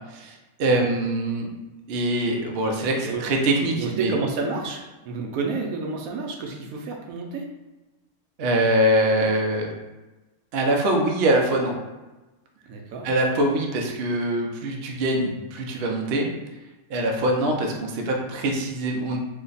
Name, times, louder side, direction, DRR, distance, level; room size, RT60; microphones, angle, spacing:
voice 1, 0.1-1.5 1.9-4.1 8.4-9.7 10.5-11.7 13.0-16.3 16.9-19.2, right 1 dB, 60° right, 1 dB, 0.7 m, -23 dB
voice 2, 3.0-3.3 3.7-7.5 12.7-13.1, right 4 dB, 75° right, 1 dB, 1.0 m, -30 dB
3.2 x 2.1 x 3.8 m, 1.1 s
omnidirectional pair, 1.5 m